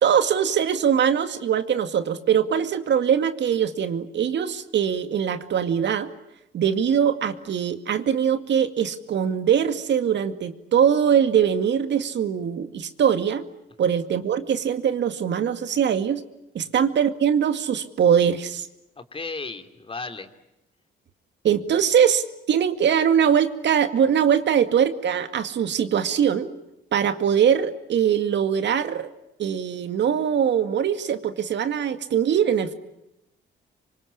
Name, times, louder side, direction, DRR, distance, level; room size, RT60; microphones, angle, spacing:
voice 1, 0.0-6.1 6.5-13.5 13.8-16.2 16.5-18.7 21.4-26.5 26.9-29.1 29.4-32.7, right 8 dB, 65° right, 9 dB, 2.2 m, -22 dB
voice 2, 19.0-20.3, left 3 dB, 25° left, 9 dB, 3.0 m, -35 dB
27.0 x 24.5 x 8.6 m, 0.89 s
cardioid pair, 90°, 20 cm